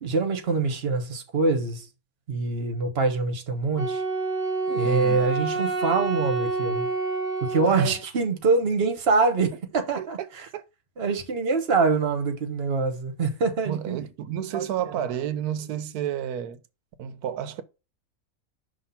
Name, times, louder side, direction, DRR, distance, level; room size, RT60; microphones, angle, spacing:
voice 1, 0.0-1.9 2.3-4.0 4.7-6.9 7.4-10.4 11.0-14.0 14.5-14.6 14.9-15.0, right 4 dB, 45° right, 1.2 m, -25 dB
Wind instrument woodwind instrument, 3.7-8.0, right 3 dB, 25° left, 3.8 m, -28 dB
voice 2, 4.8-5.3 7.6-8.0 10.0-10.3 10.5-10.6 13.7-16.6 17.0-17.6, right 10 dB, 90° right, 1.1 m, -31 dB
5.7 x 3.3 x 5.6 m
omnidirectional pair, 1.5 m